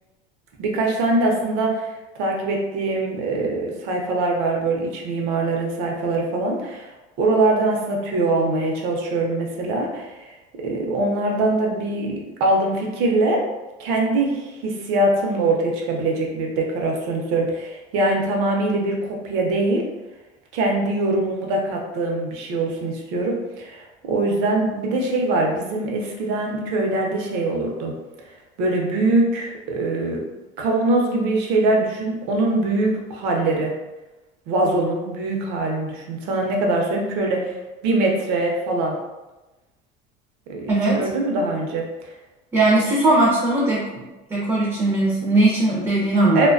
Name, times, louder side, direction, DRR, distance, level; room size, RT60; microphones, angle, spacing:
voice 1, 0.6-1.9 2.2-6.9 7.2-10.3 10.6-13.4 13.8-19.8 20.5-27.9 28.6-30.2 30.6-33.7 34.5-37.6 37.8-39.0 40.5-41.9 46.3-46.5, right 2 dB, 75° right, 0 dB, 0.6 m, -22 dB
voice 2, 40.7-41.1 42.5-44.0 44.3-46.5, right 2 dB, 15° right, -4 dB, 0.4 m, -19 dB
2.7 x 2.2 x 2.5 m, 1.1 s
cardioid pair, 150°, 19 cm